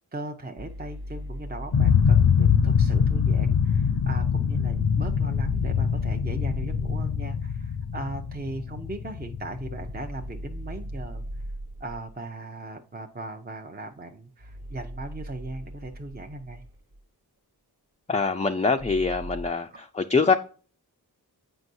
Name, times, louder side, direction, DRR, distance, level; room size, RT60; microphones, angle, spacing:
voice 1, 0.1-11.2 11.8-16.6 19.7-19.8, right 2 dB, 25° right, 0.6 m, -38 dB
sound 1, 0.6-2.9 4.7-7.3 9.6-12.1 14.4-17.0 18.8-19.5, right 1 dB, 70° right, 0.9 m, -38 dB
sound 2, 1.7-10.6, left 7 dB, 75° left, 0.6 m, -23 dB
voice 2, 18.1-20.3, left 4 dB, 20° left, 0.4 m, -24 dB
7.8 x 5.3 x 2.6 m
wide cardioid pair, 55°, 40 cm